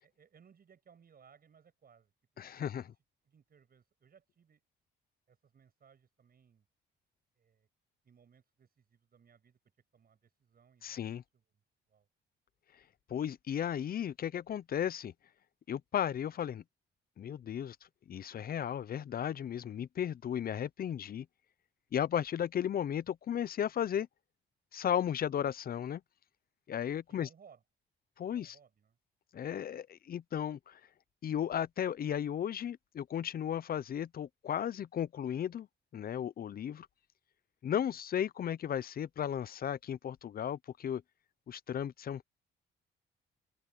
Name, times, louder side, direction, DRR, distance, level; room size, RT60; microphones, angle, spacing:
voice 1, 0.0-2.1 2.6-2.9 3.2-4.7 5.3-6.7 7.3-7.7 8.0-9.6 9.9-11.6 11.9-12.1 27.1-27.6 28.3-29.0 34.8-34.9 37.9-38.0, right 7 dB, 50° right, 7.7 m, -63 dB
voice 2, 2.4-2.8 10.8-11.2 13.1-15.1 15.7-16.6 17.2-17.8 18.1-21.3 21.9-24.1 24.7-26.0 26.7-27.3 28.2-28.6 29.3-30.8 31.2-35.7 35.9-36.9 37.6-41.0 41.5-42.3, left 9 dB, 50° left, 0.6 m, -35 dB
open air
cardioid pair, 90°, 20 cm